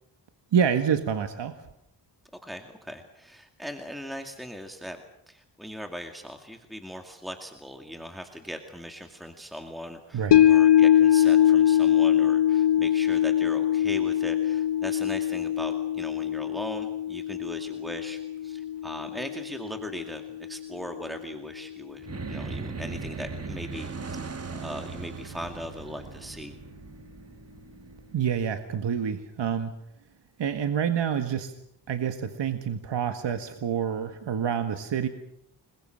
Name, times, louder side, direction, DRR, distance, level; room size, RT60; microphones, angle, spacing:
voice 1, 0.5-1.6 10.1-10.4 28.1-29.7 30.4-31.5 31.9-35.1, right 8 dB, 70° right, 7 dB, 1.8 m, -27 dB
voice 2, 2.4-5.0 5.3-26.5, equal, ahead, 4 dB, 2.3 m, -39 dB
sound 1, 10.3-20.7 21.0-21.1, left 11 dB, 70° left, 1.0 m, -23 dB
sound 2, 22.0-28.6, right 4 dB, 35° right, 1.4 m, -38 dB
29.5 x 21.5 x 6.5 m, 0.75 s
wide cardioid pair, 100°, 44 cm